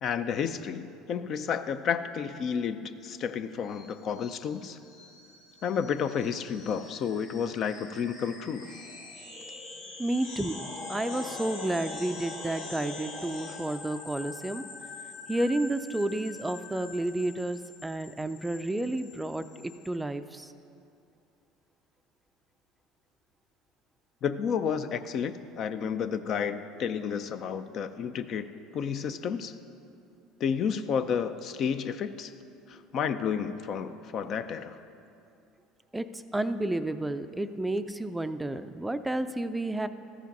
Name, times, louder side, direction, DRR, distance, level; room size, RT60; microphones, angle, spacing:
voice 1, 0.0-4.8 5.6-8.7 24.2-29.5 30.4-32.3 32.7-34.8, left 7 dB, 50° left, 11 dB, 0.4 m, -31 dB
sound 1, 3.7-19.9, left 3 dB, 75° left, 2.0 m, -44 dB
voice 2, 10.0-14.6 15.3-20.5 35.9-39.9, right 1 dB, 10° right, 10 dB, 0.4 m, -31 dB
14.0 x 5.1 x 5.3 m, 2.6 s
supercardioid pair, 90°, 0 cm